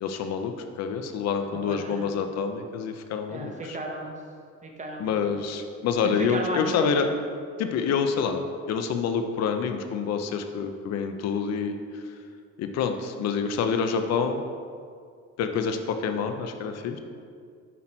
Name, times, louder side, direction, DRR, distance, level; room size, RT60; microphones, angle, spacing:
voice 1, 0.0-3.8 5.0-7.1 7.6-11.8 12.6-14.4 15.4-17.0, left 6 dB, 60° left, 7 dB, 0.6 m, -27 dB
voice 2, 1.5-2.1 3.3-4.2 4.6-5.1 6.2-7.0, right 2 dB, 25° right, 1 dB, 1.0 m, -34 dB
8.2 x 6.0 x 4.3 m, 2.2 s
cardioid pair, 150°, 30 cm